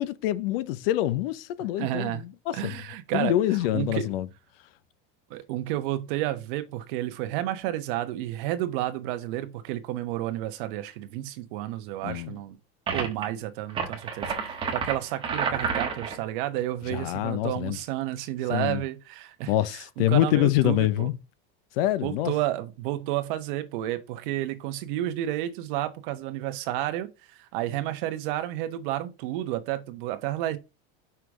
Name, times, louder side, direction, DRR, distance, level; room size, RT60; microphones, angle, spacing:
voice 1, 0.0-2.7 3.1-4.3 12.0-12.4 16.9-17.8 18.5-18.8 19.5-21.2 21.8-22.3, left 14 dB, 75° left, 0.7 m, -26 dB
voice 2, 1.8-2.2 2.5-3.4 3.7-4.1 5.3-12.6 12.9-14.3 14.7-21.1 22.0-30.6, right 14 dB, 60° right, 1.0 m, -31 dB
sound 1, 12.9-13.2 13.7-16.2, right 5 dB, 20° right, 1.4 m, -30 dB
5.8 x 4.8 x 3.6 m
cardioid pair, 170°, 29 cm